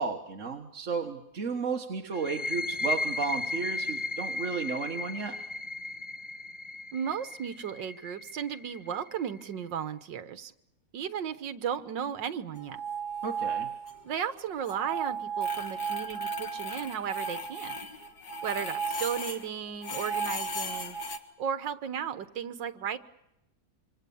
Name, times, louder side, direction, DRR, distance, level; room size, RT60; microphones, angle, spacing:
voice 1, 0.0-5.4 13.2-13.7, right 5 dB, 45° right, 3 dB, 1.7 m, -33 dB
sound 1, 2.1-9.5, left 2 dB, 30° left, 0.5 m, -35 dB
voice 2, 6.9-10.5 10.9-12.8 14.0-17.8 18.4-21.0 21.4-23.0, right 8 dB, 75° right, 11 dB, 1.9 m, -35 dB
sound 2, 12.6-14.2 14.4-19.5 19.8-21.2, right 3 dB, 60° left, 2.2 m, -34 dB
26.5 x 25.5 x 7.1 m, 0.86 s
omnidirectional pair, 2.0 m